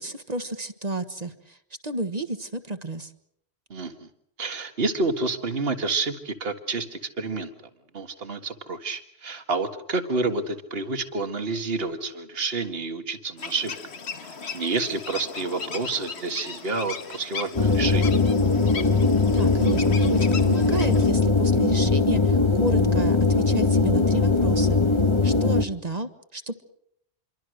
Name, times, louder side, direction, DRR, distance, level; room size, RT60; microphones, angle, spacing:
voice 1, 0.0-1.6 1.8-3.1 19.3-24.8 25.2-26.6, right 2 dB, 40° right, 9 dB, 1.5 m, -31 dB
voice 2, 3.7-4.1 4.4-7.5 7.9-13.7 14.2-18.1, right 3 dB, 65° right, 8 dB, 1.9 m, -29 dB
sound 1, 13.4-21.1, left 5 dB, 80° left, 1.7 m, -37 dB
sound 2, 17.6-25.7, left 3 dB, 30° left, 1.2 m, -20 dB
27.0 x 23.5 x 6.5 m, 0.73 s
omnidirectional pair, 1.1 m